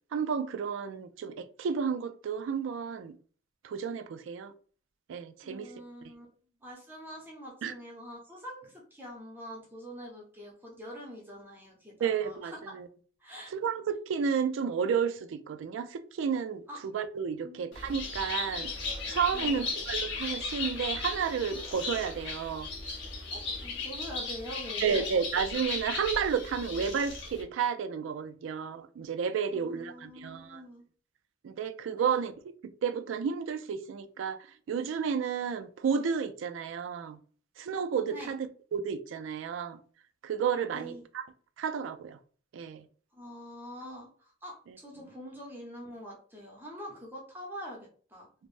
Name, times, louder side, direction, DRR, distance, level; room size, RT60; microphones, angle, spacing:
voice 1, 0.1-3.1 3.6-4.5 5.1-5.7 7.6-7.7 12.0-12.9 13.5-18.7 19.1-22.7 24.8-30.6 31.4-32.3 32.8-34.4 34.7-37.2 37.6-38.5 38.7-39.8 40.2-41.2 41.6-42.2 42.5-42.9, right 6 dB, 75° right, 0.3 m, -31 dB
voice 2, 5.4-6.3 6.6-12.7 13.2-13.5 16.7-16.8 17.4-17.6 19.3-19.6 23.3-25.0 29.5-30.8 31.9-32.2 38.1-38.3 40.7-41.0 43.1-48.3, equal, 10° right, 0.6 m, -45 dB
Bird, 17.7-27.4, left 4 dB, 60° left, 0.9 m, -36 dB
3.2 x 2.0 x 2.5 m
head